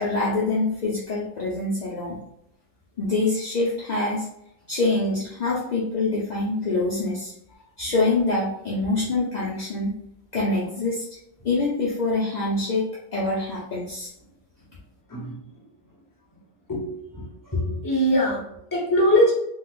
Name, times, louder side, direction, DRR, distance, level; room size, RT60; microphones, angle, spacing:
voice 1, 0.0-2.2 3.0-4.3 4.7-7.3 7.8-9.9 10.3-11.1 11.4-12.9 13.1-14.1, left 2 dB, 55° left, -6 dB, 0.4 m, -25 dB
voice 2, 16.7-19.3, equal, 20° left, -4 dB, 0.7 m, -22 dB
3.8 x 2.3 x 2.4 m, 0.77 s
omnidirectional pair, 1.4 m